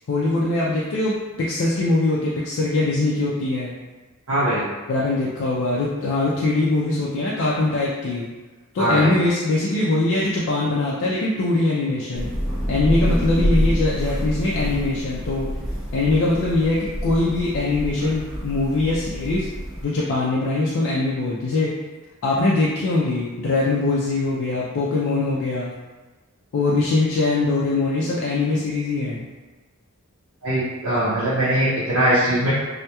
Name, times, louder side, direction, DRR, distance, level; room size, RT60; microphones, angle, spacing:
voice 1, 0.1-3.7 4.9-8.3 8.7-12.3 12.7-15.6 15.9-19.5 19.8-21.8 22.2-25.7 26.5-29.3, left 2 dB, 60° left, -6 dB, 0.3 m, -22 dB
voice 2, 4.3-4.6 8.8-9.1 30.4-32.5, right 1 dB, 60° right, -12 dB, 0.6 m, -21 dB
Thunder / Rain, 12.1-19.8, equal, ahead, 1.0 m, -27 dB
2.8 x 2.1 x 2.2 m, 1.2 s
head